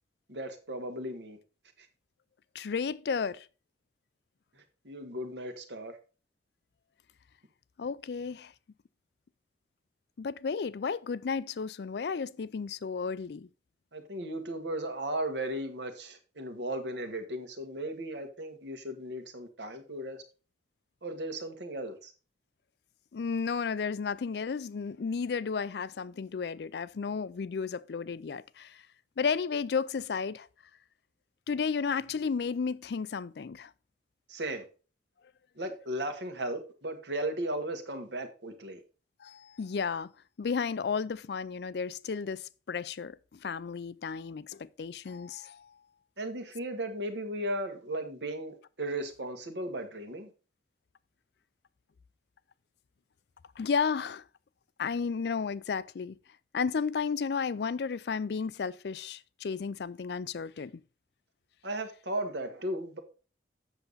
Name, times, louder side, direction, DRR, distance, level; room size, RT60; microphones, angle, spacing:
voice 1, 0.3-1.4 1.8-1.9 4.8-6.0 13.9-20.2 21.0-22.1 34.3-34.6 35.6-38.8 46.2-50.3 61.6-63.0, right 1 dB, 75° right, 1.6 m, -36 dB
voice 2, 2.5-3.5 7.8-8.5 10.2-13.5 23.1-28.8 29.2-30.5 31.5-33.7 39.2-40.1 40.4-45.7 53.6-54.2 54.8-56.2 56.5-60.7, left 5 dB, 65° left, 0.4 m, -33 dB
8.0 x 6.8 x 4.0 m
head